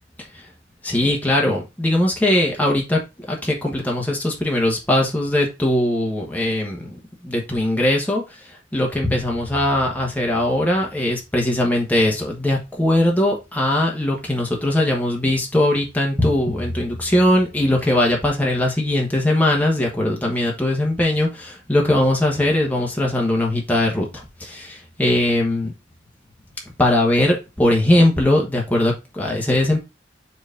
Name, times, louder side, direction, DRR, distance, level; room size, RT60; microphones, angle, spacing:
voice 1, 0.8-3.0 3.3-6.9 7.2-8.2 8.7-25.7 26.8-29.8, left 1 dB, 10° left, 1.3 m, -20 dB
4.8 x 4.0 x 5.1 m
head